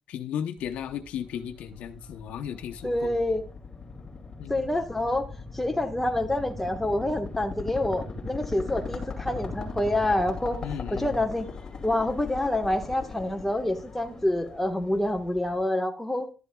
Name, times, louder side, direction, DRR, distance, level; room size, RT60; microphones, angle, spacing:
voice 1, 0.1-3.1 4.4-4.6 10.6-11.1, left 9 dB, 85° left, 0.9 m, -35 dB
sound 1, 0.6-15.6, left 4 dB, 30° left, 2.5 m, -39 dB
voice 2, 2.8-3.4 4.5-10.6 10.9-11.5 11.8-16.3, left 1 dB, 5° left, 1.4 m, -27 dB
12.0 x 11.0 x 2.3 m
cardioid pair, 105°, 2 cm